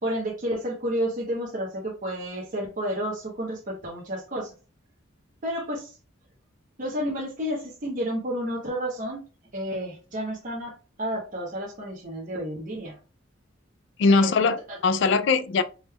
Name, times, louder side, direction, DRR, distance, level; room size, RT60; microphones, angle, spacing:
voice 1, 0.0-4.5 5.4-6.0 6.8-9.2 9.5-13.0 14.1-14.8, equal, 45° right, 1.0 m, -31 dB
voice 2, 14.0-15.6, left 4 dB, 65° left, 0.4 m, -21 dB
5.0 x 3.5 x 2.3 m
head